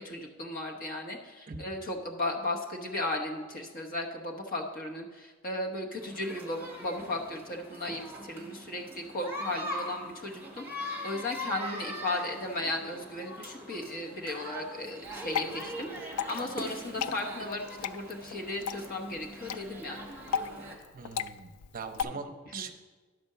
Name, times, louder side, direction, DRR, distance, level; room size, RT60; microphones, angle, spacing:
voice 1, 0.0-20.0 22.1-22.2 22.5-22.6, left 2 dB, 40° left, 1 dB, 1.1 m, -36 dB
sound 1, 6.0-20.8, equal, 10° right, 1.2 m, -41 dB
Water / Drip, 15.0-22.0, left 8 dB, 85° left, 0.3 m, -37 dB
voice 2, 20.9-22.7, right 4 dB, 40° right, 5 dB, 0.7 m, -41 dB
10.5 x 4.3 x 6.7 m, 1.4 s
head